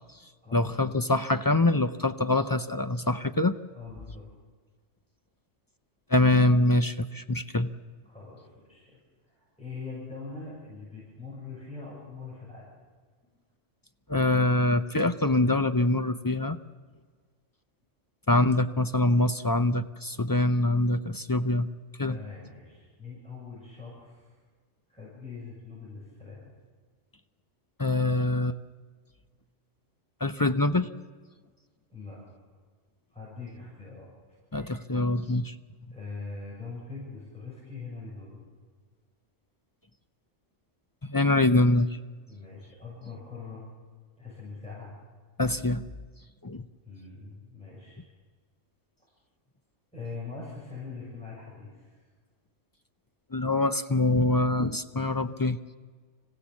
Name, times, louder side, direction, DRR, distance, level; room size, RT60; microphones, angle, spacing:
voice 1, 0.5-3.5 6.1-7.7 14.1-16.6 18.3-21.7 22.0-22.2 27.8-28.6 30.2-30.9 34.5-35.5 41.0-41.9 45.4-45.8 46.4-46.6 53.3-55.6, left 2 dB, 30° left, 10 dB, 0.4 m, -24 dB
voice 2, 3.7-4.3 8.1-8.9 9.3-12.7 22.1-24.3 24.9-26.5 31.9-32.2 33.1-34.1 35.9-38.5 42.3-43.6 44.2-44.9 46.9-48.0 49.9-52.0, left 4 dB, 5° left, -6 dB, 7.0 m, -42 dB
26.0 x 15.5 x 7.2 m, 1.5 s
omnidirectional pair, 1.3 m